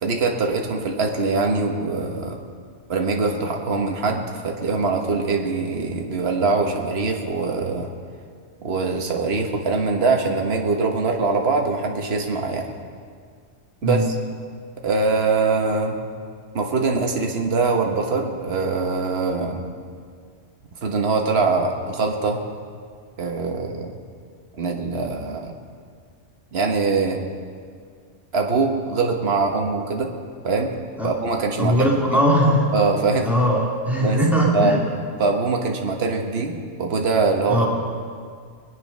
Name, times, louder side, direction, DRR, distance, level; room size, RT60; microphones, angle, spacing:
voice 1, 0.0-2.4 2.9-7.9 8.6-12.7 13.8-14.1 14.8-16.0 16.5-19.6 20.8-22.4 23.2-24.0 24.5-25.5 26.5-27.2 28.3-30.1 30.4-30.7 31.0-32.2 32.7-33.3 34.0-34.2 34.5-34.8 35.2-37.6, right 4 dB, 60° right, 2 dB, 1.5 m, -23 dB
voice 2, 31.6-32.6 33.2-34.8 37.5-37.7, equal, ahead, -4 dB, 2.8 m, -19 dB
22.0 x 9.8 x 5.5 m, 2.1 s
omnidirectional pair, 1.2 m